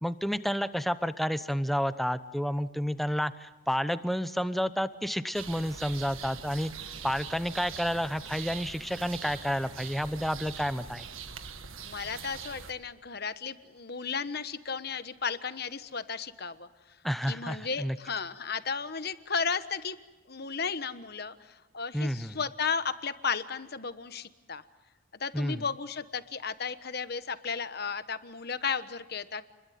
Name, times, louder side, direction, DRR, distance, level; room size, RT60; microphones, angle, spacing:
voice 1, 0.0-6.7 7.0-11.1 17.0-18.0 21.9-22.3 25.3-25.6, equal, ahead, 12 dB, 0.8 m, -30 dB
sound 1, 5.3-12.7, right 6 dB, 80° right, 1.7 m, -43 dB
voice 2, 11.8-16.7 17.3-20.0 20.3-24.6 25.2-29.4, left 5 dB, 50° left, 11 dB, 1.2 m, -34 dB
29.5 x 22.0 x 9.3 m, 1.1 s
head